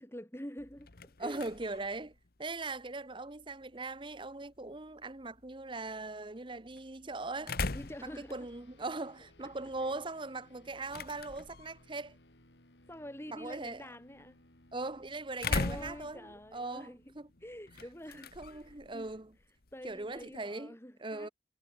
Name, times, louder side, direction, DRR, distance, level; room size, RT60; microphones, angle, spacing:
voice 1, 0.0-1.5 7.4-8.5 9.4-9.5 9.8-9.9 12.9-14.4 15.4-17.1 17.4-19.1 19.7-21.3, equal, 15° left, 4.0 m, -47 dB
sound 1, 0.6-20.4, left 3 dB, 55° left, 1.2 m, -43 dB
voice 2, 1.2-2.1 2.4-7.6 8.3-12.2 13.3-13.8 14.7-16.2 16.5-17.3 18.4-19.3 19.8-20.7 21.0-21.3, right 3 dB, 25° right, 1.0 m, -40 dB
sound 2, 7.8-19.5, left 1 dB, 75° left, 5.4 m, -64 dB
head